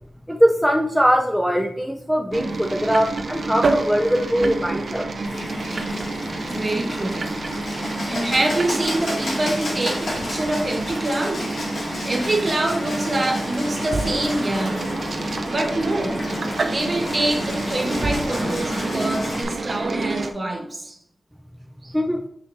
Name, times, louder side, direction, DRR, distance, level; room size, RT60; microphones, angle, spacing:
voice 1, 0.3-5.1 21.9-22.2, equal, ahead, 1 dB, 0.5 m, -21 dB
sound 1, 2.3-20.3, right 3 dB, 60° right, 0.6 m, -29 dB
Bird, 5.2-19.4, left 1 dB, 75° left, 2.2 m, -31 dB
voice 2, 6.5-7.2 7.7-11.5 11.9-15.1 15.5-16.2 16.6-21.0 21.8-21.9, right 1 dB, 35° right, 2 dB, 1.4 m, -25 dB
6.7 x 5.6 x 2.7 m, 0.72 s
wide cardioid pair, 105°, 0 cm